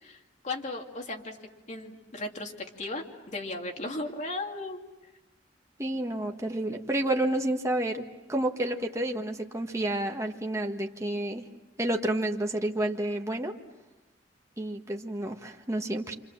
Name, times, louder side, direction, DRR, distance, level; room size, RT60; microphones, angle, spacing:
voice 1, 0.0-1.4 1.7-4.8, left 2 dB, 45° left, 2 dB, 2.7 m, -36 dB
voice 2, 5.8-8.0 8.3-11.5 11.8-13.5 14.6-16.1, right 1 dB, 15° right, 2 dB, 1.6 m, -30 dB
29.0 x 26.5 x 7.5 m, 1.1 s
head